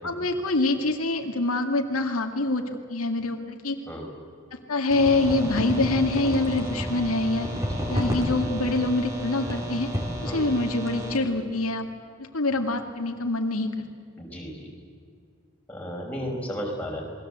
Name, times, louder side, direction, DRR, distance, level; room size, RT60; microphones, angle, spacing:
voice 1, 0.0-3.8 4.7-7.5 7.9-9.9 10.2-11.9 12.2-13.7, left 2 dB, 85° left, 3 dB, 2.1 m, -25 dB
sound 1, 4.9-11.2, equal, 15° right, 4.3 m, -31 dB
voice 2, 7.5-7.8 10.2-10.4 14.2-14.7 15.7-17.0, equal, 5° left, -3 dB, 5.5 m, -34 dB
28.0 x 20.5 x 8.1 m, 2.2 s
head